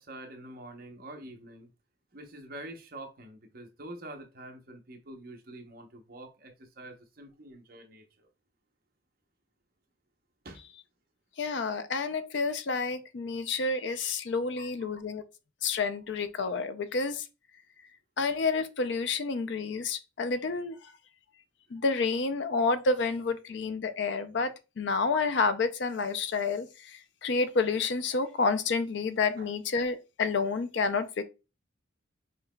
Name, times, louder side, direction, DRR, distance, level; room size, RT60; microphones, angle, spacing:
voice 1, 0.0-1.7 2.1-8.3 10.4-10.6 14.6-14.9 29.4-29.5, right 1 dB, 45° right, 0.8 m, -46 dB
voice 2, 11.4-15.2 15.6-17.3 18.2-20.9 21.7-24.5 24.8-31.2, left 4 dB, 60° left, 0.4 m, -29 dB
5.6 x 2.9 x 2.2 m
head